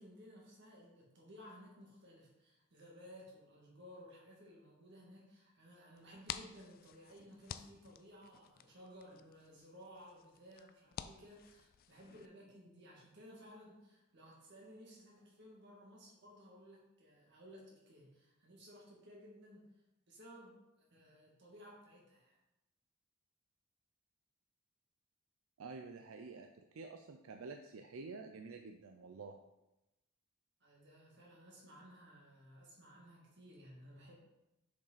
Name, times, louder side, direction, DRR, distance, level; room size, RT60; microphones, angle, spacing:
voice 1, 0.0-19.7 20.1-20.6 20.9-22.4 30.6-34.2, equal, 60° right, -3 dB, 2.2 m, -57 dB
sound 1, 6.0-12.3, left 9 dB, 45° left, 0.3 m, -51 dB
voice 2, 25.6-29.4, right 4 dB, 90° right, 5 dB, 0.5 m, -49 dB
6.9 x 5.4 x 4.1 m, 0.94 s
head